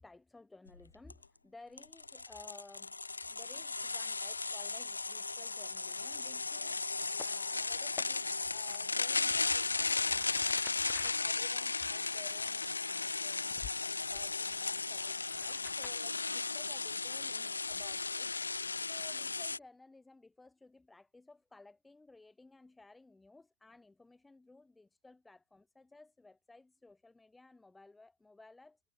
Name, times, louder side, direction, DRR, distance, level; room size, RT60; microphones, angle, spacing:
voice 1, 0.0-2.9 3.3-13.6 14.1-18.3 18.8-28.8, left 2 dB, 10° left, 4.9 m, -57 dB
sound 1, 0.7-0.8 1.1-1.2 1.8-19.6, left 3 dB, 80° left, 0.4 m, -35 dB
sound 2, 7.0-7.3 7.8-8.1 8.7-8.8 9.3-13.1 13.5-13.7 14.1-16.0, left 11 dB, 30° left, 2.6 m, -51 dB
figure-of-eight pair, 90°, 0 cm